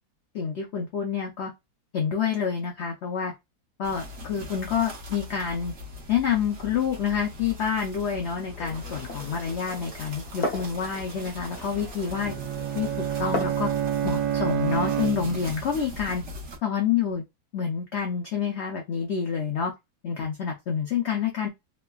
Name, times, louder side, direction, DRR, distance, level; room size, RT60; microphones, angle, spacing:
voice 1, 0.3-1.5 1.9-3.3 3.8-5.7 6.1-12.3 12.7-12.9 13.2-13.7 14.0-16.2 16.6-17.2 17.5-19.7 20.0-21.5, left 7 dB, 85° left, 0.6 m, -28 dB
sound 1, 3.8-16.6, left 1 dB, 50° right, 1.1 m, -41 dB
Glass, 8.5-13.6, left 1 dB, 45° left, 0.8 m, -37 dB
Bowed string instrument, 12.1-15.7, right 10 dB, 75° right, 1.1 m, -28 dB
3.1 x 2.2 x 2.2 m
omnidirectional pair, 1.8 m